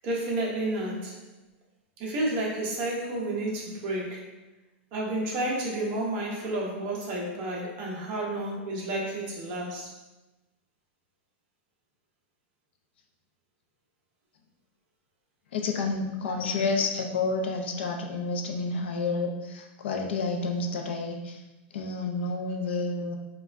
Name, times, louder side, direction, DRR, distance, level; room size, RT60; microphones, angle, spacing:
voice 1, 0.0-1.2 2.0-4.3 4.9-9.9, right 1 dB, 30° right, -2 dB, 0.6 m, -31 dB
voice 2, 15.5-21.4 21.7-23.1, left 3 dB, 65° left, 3 dB, 0.5 m, -30 dB
4.5 x 2.2 x 2.5 m, 1.1 s
supercardioid pair, 180°, 6 cm